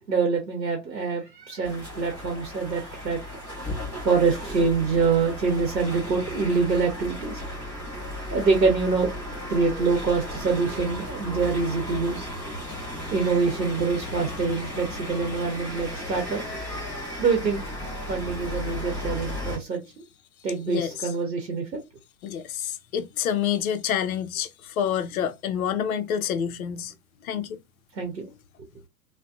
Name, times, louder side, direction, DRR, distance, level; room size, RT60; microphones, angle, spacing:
voice 1, 0.0-3.2 4.0-7.4 8.3-9.1 9.5-12.6 13.0-16.6 17.2-17.6 18.1-20.0 20.4-21.8 27.9-28.3, right 4 dB, 90° right, 0.8 m, -25 dB
sound 1, 1.6-19.6, left 1 dB, ahead, 0.3 m, -35 dB
voice 2, 22.2-26.9 27.2-27.6, left 9 dB, 60° left, 0.5 m, -28 dB
2.6 x 2.1 x 2.3 m
figure-of-eight pair, 105°, 49 cm